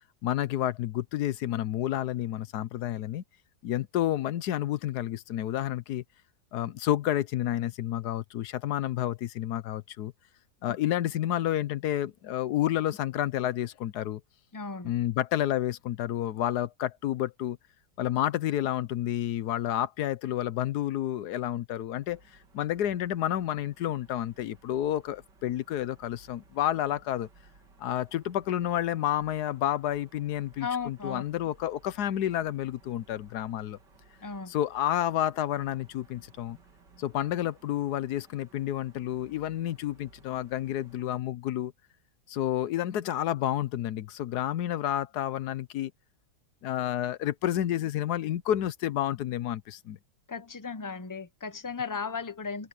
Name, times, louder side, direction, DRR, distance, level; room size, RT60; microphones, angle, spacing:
voice 1, 0.2-3.2 3.6-6.0 6.5-10.1 10.6-14.2 14.8-17.6 18.0-22.2 22.5-27.3 27.8-33.8 34.5-36.6 37.0-41.7 42.3-45.9 46.6-50.0, left 12 dB, 70° left, 1.2 m, -30 dB
voice 2, 14.5-14.9 30.6-31.2 34.2-34.5 50.3-52.7, left 5 dB, 25° left, 0.4 m, -35 dB
sound 1, 22.0-41.1, right 3 dB, 70° right, 3.3 m, -59 dB
open air
omnidirectional pair, 1.9 m